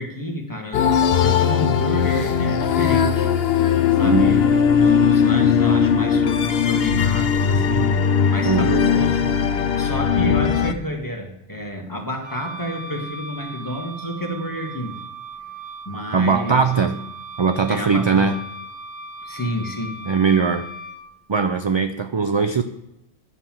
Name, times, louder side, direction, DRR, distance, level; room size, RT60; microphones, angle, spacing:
voice 1, 0.0-3.3 3.9-4.5 4.8-8.0 8.3-15.0 15.9-16.7 17.7-18.4 19.2-20.0, equal, 20° left, 2 dB, 1.8 m, -29 dB
sound 1, 0.7-10.7, left 7 dB, 70° left, 0.9 m, -19 dB
voice 2, 4.0-4.4 8.4-8.8 16.1-17.1 17.4-18.4 20.1-20.7 21.3-22.6, right 5 dB, 40° right, 8 dB, 0.4 m, -20 dB
Wind instrument woodwind instrument, 12.2-21.0, right 2 dB, 75° right, 1.9 m, -37 dB
11.0 x 5.6 x 7.5 m, 0.87 s
omnidirectional pair, 1.1 m